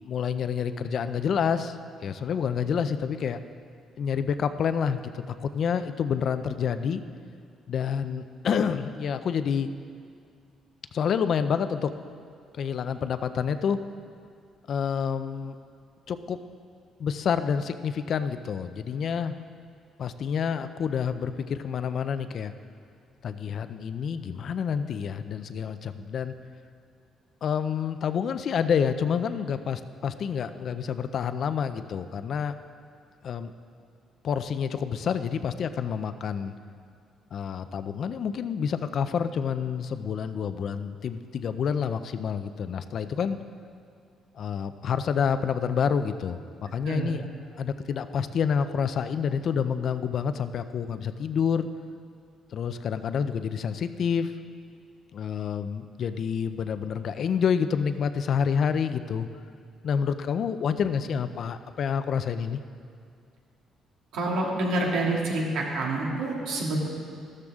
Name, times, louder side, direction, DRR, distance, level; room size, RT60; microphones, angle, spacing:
voice 1, 0.0-3.4 4.0-7.0 7.7-9.7 10.9-11.9 12.6-13.8 14.7-15.6 16.1-16.4 17.0-19.4 20.0-22.5 23.2-26.3 27.4-32.5 33.2-33.5 34.2-36.5 37.3-43.4 44.4-46.4 46.7-47.2 47.5-51.7 52.5-54.3 55.1-59.3 59.8-62.6, left 7 dB, 45° left, 11 dB, 0.5 m, -28 dB
voice 2, 64.1-66.9, right 2 dB, 90° right, -2 dB, 2.4 m, -27 dB
13.5 x 13.0 x 3.6 m, 2.3 s
cardioid pair, 155°, 0 cm